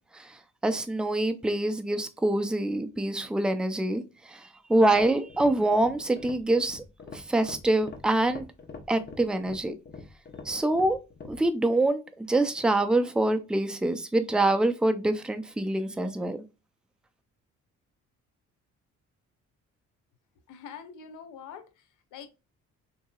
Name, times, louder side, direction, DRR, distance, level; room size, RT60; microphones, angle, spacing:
voice 1, 0.1-6.8 7.1-8.5 8.9-9.8 10.4-11.0 11.3-16.4, right 2 dB, 5° right, 0.4 m, -25 dB
sound 1, 4.9-11.5, left 4 dB, 35° left, 0.9 m, -44 dB
voice 2, 20.5-22.3, left 7 dB, 80° left, 0.8 m, -45 dB
3.9 x 2.8 x 2.3 m
cardioid pair, 90°, 30 cm